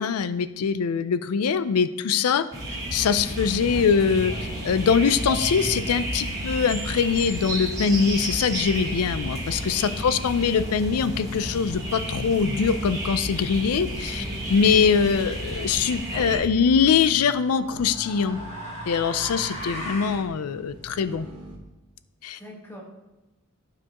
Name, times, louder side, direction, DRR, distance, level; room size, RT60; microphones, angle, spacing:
voice 1, 0.0-2.4 2.9-4.3 4.6-14.2 14.5-18.4 18.9-21.3 22.2-22.4, left 6 dB, 85° left, 13 dB, 0.4 m, -23 dB
sound 1, 2.5-16.4, right 1 dB, 15° right, 1.5 m, -32 dB
sound 2, 3.6-21.6, right 2 dB, 85° right, 1.5 m, -43 dB
voice 2, 9.8-10.1 14.1-14.4 22.3-22.8, right 1 dB, 10° left, -2 dB, 1.4 m, -41 dB
sound 3, 16.1-16.5 17.5-20.3, equal, 30° left, 1.7 m, -37 dB
12.0 x 4.8 x 2.9 m, 1.0 s
head